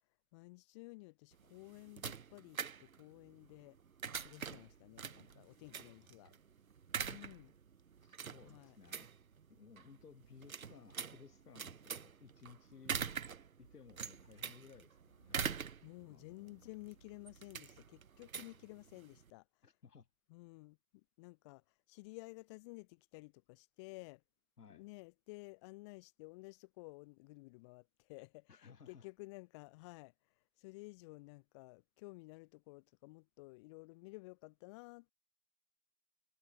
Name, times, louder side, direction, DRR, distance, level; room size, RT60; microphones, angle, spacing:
voice 1, 0.3-3.8 4.2-6.3 7.1-7.5 8.4-8.8 15.8-19.7 20.3-24.2 24.7-35.1, left 25 dB, 15° left, 6.2 m, -54 dB
sound 1, 1.3-19.3, right 7 dB, 60° right, 4.4 m, -45 dB
voice 2, 5.3-6.4 8.0-9.1 9.5-13.2 13.6-15.6 16.0-16.5 19.6-20.1 24.6-24.9 28.5-29.1, left 6 dB, 70° left, 7.1 m, -59 dB
hypercardioid pair, 175°, 48 cm